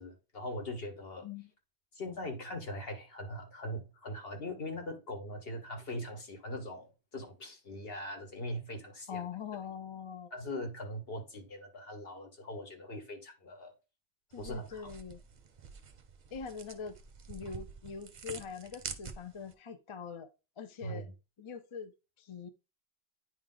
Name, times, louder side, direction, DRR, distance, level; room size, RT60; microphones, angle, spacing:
voice 1, 0.0-1.3 1.9-9.3 10.3-13.7 14.4-14.9 20.8-21.0, left 1 dB, 65° left, 1.6 m, -41 dB
voice 2, 9.1-10.3 14.3-15.2 16.3-16.9 17.3-20.3 20.6-21.1 21.4-21.9 22.2-22.5, left 6 dB, 40° left, 0.4 m, -43 dB
sound 1, 14.3-19.5, right 6 dB, 50° right, 0.7 m, -47 dB
9.5 x 3.2 x 3.8 m
omnidirectional pair, 1.1 m